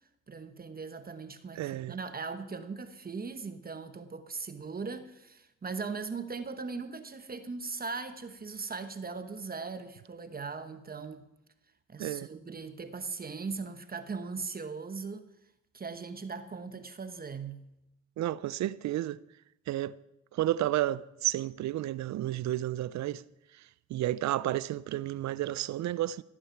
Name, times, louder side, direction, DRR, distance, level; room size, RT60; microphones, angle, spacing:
voice 1, 0.3-11.2 11.9-15.3 15.7-17.6, right 4 dB, 30° right, 1.1 m, -39 dB
voice 2, 1.6-2.0 12.0-12.3 18.2-19.2 19.7-20.0 20.3-23.2 23.9-26.2, right 14 dB, 65° right, 0.5 m, -31 dB
16.0 x 8.9 x 5.9 m
cardioid pair, 90°, 30 cm